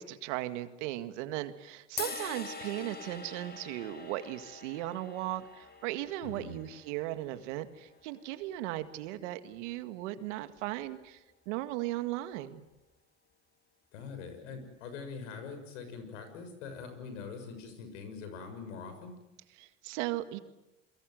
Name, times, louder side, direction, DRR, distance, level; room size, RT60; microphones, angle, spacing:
voice 1, 0.0-12.7 19.6-20.4, right 15 dB, 80° right, 10 dB, 2.0 m, -37 dB
sound 1, 2.0-8.2, left 4 dB, 25° left, 5.2 m, -44 dB
voice 2, 6.2-6.6 13.9-19.1, left 5 dB, 85° left, 8 dB, 6.6 m, -43 dB
29.0 x 23.0 x 7.8 m, 0.98 s
supercardioid pair, 85°, 36 cm